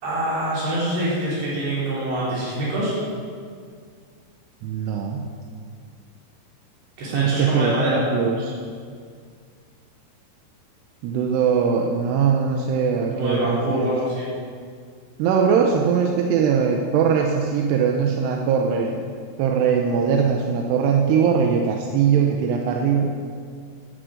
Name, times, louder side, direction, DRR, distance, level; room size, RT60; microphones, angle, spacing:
voice 1, 0.0-3.0 7.0-8.0 13.1-14.3, right 1 dB, 70° right, -8 dB, 6.0 m, -25 dB
voice 2, 4.6-5.2 7.1-8.5 11.0-13.9 15.2-19.0 19.4-23.1, right 6 dB, 85° right, 1 dB, 2.8 m, -21 dB
11.0 x 10.0 x 6.6 m, 2.1 s
omnidirectional pair, 4.9 m